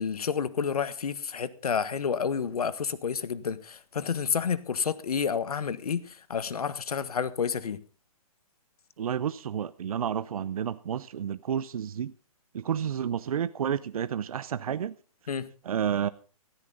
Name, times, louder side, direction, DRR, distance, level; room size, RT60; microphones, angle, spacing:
voice 1, 0.0-7.8 15.3-15.5, left 6 dB, 85° left, 1.4 m, -30 dB
voice 2, 9.0-12.1 12.5-14.9 15.6-16.1, right 8 dB, 70° right, 0.6 m, -30 dB
17.5 x 13.0 x 3.9 m
hypercardioid pair, 165°, 19 cm